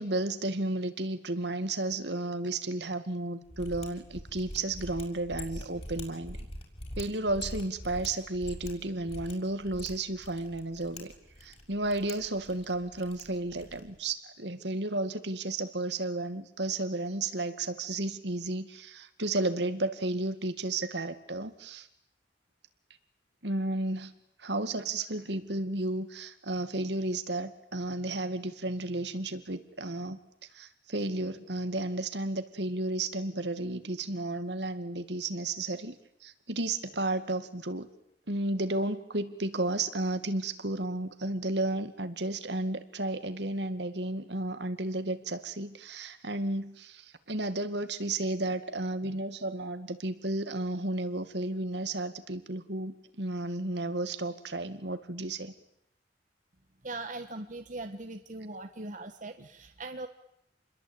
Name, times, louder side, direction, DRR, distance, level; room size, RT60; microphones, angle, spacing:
voice 1, 0.0-6.4 7.0-11.1 11.4-21.9 23.4-24.1 24.4-30.2 30.5-37.9 38.3-55.5 59.4-59.5, right 2 dB, 65° right, 10 dB, 2.3 m, -33 dB
Mechanisms, 3.5-14.0, left 1 dB, 35° left, 6.6 m, -44 dB
voice 2, 56.8-60.1, right 2 dB, 45° right, 7 dB, 1.5 m, -40 dB
29.5 x 22.0 x 9.1 m, 0.77 s
head